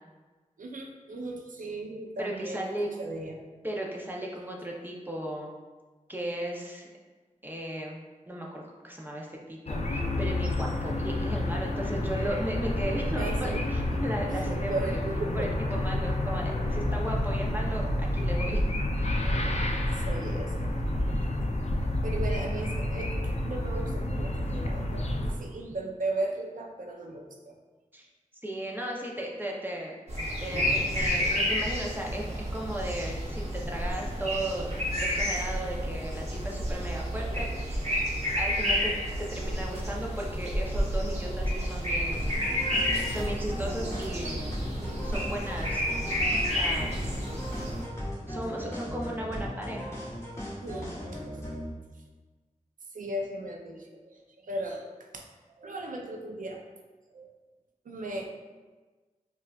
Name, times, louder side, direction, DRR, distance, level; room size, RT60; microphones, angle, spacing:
voice 1, 0.6-3.4 13.2-13.6 14.3-15.5 19.9-20.7 22.0-27.5 42.5-42.9 50.6-51.4 51.9-52.0 52.9-56.6 57.1-57.3 57.8-58.4, right 2 dB, 80° right, 1 dB, 0.5 m, -37 dB
voice 2, 2.2-2.9 3.6-5.5 6.1-6.9 7.4-8.0 8.3-15.0 15.3-19.5 27.9-28.1 28.4-30.0 30.4-34.7 34.9-37.9 38.4-38.9 39.2-42.3 43.1-44.5 45.0-46.2 46.5-47.0 48.3-50.0, right 1 dB, 15° right, -2 dB, 0.7 m, -36 dB
sound 1, 9.7-25.3, left 1 dB, 55° left, 0.4 m, -29 dB
sound 2, 30.1-47.8, equal, 50° right, 1.0 m, -30 dB
sound 3, 42.1-51.7, equal, 20° left, 1.1 m, -37 dB
5.3 x 2.4 x 2.4 m, 1.3 s
wide cardioid pair, 55°, 14 cm